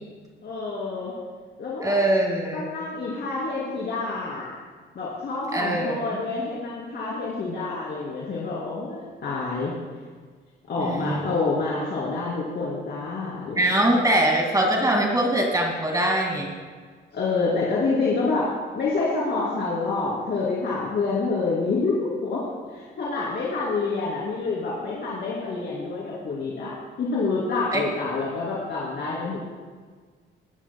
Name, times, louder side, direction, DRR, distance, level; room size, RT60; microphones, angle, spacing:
voice 1, 0.4-1.1 1.6-2.0 2.5-4.5 4.9-9.7 10.7-13.6 17.1-29.4, left 3 dB, 60° left, -6 dB, 2.9 m, -27 dB
voice 2, 1.8-2.7 5.5-6.2 10.8-11.3 13.6-16.5 27.7-27.9, right 1 dB, 20° right, 0 dB, 2.2 m, -23 dB
20.0 x 11.0 x 2.3 m, 1.5 s
cardioid pair, 90°, 20 cm